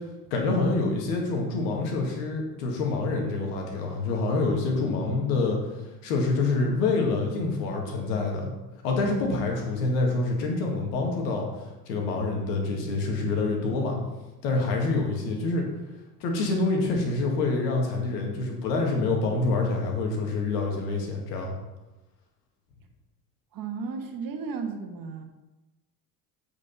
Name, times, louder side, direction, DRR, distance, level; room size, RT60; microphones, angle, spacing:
voice 1, 0.3-5.6 6.0-8.5 8.8-11.5 11.9-14.0 14.4-15.7 16.2-21.5, left 3 dB, 75° left, 1 dB, 2.1 m, -26 dB
voice 2, 5.1-5.5 23.5-25.2, right 5 dB, 45° right, 5 dB, 1.4 m, -35 dB
8.3 x 5.3 x 5.5 m, 1.1 s
hypercardioid pair, 70°, 49 cm